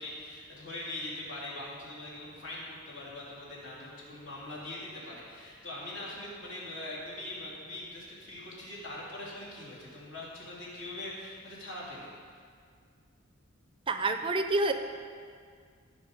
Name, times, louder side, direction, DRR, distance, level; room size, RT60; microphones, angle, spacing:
voice 1, 0.0-12.4, left 1 dB, 65° left, -6 dB, 3.1 m, -42 dB
voice 2, 13.9-14.7, right 2 dB, 25° right, 7 dB, 0.4 m, -27 dB
15.5 x 5.7 x 5.1 m, 2.1 s
head